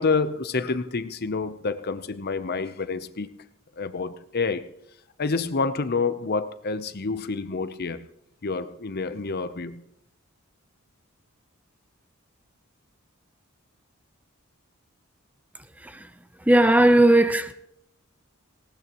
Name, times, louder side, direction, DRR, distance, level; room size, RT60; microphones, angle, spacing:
voice 1, 0.0-3.3 3.8-4.7 5.2-8.1 8.4-9.8, left 4 dB, 50° left, 0.7 m, -28 dB
voice 2, 15.8-16.1 16.4-17.5, right 1 dB, 5° right, 0.6 m, -18 dB
19.5 x 18.0 x 3.0 m
head